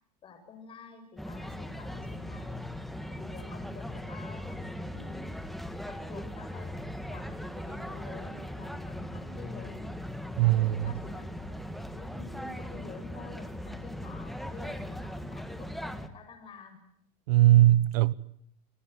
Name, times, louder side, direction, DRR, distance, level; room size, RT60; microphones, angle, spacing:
voice 1, 0.2-2.6 3.1-5.3 5.8-9.9 10.7-16.8, left 5 dB, 25° left, 7.6 m, -49 dB
sound 1, 1.2-16.1, left 1 dB, ahead, 1.7 m, -39 dB
voice 2, 10.4-10.8 17.3-18.1, right 15 dB, 75° right, 1.3 m, -20 dB
29.0 x 20.0 x 9.7 m
supercardioid pair, 150°, 20 cm